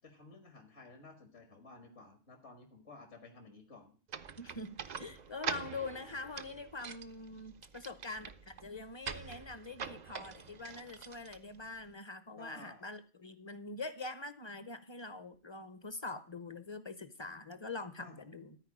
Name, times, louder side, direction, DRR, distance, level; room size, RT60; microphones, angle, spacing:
voice 1, 0.0-4.0 12.4-12.8 18.0-18.3, left 3 dB, 70° left, 4 dB, 2.1 m, -54 dB
sound 1, 4.1-11.9, right 6 dB, 45° right, 0.6 m, -45 dB
voice 2, 4.4-18.6, left 3 dB, 25° left, 12 dB, 0.7 m, -44 dB
13.5 x 4.7 x 8.4 m, 0.40 s
omnidirectional pair, 1.2 m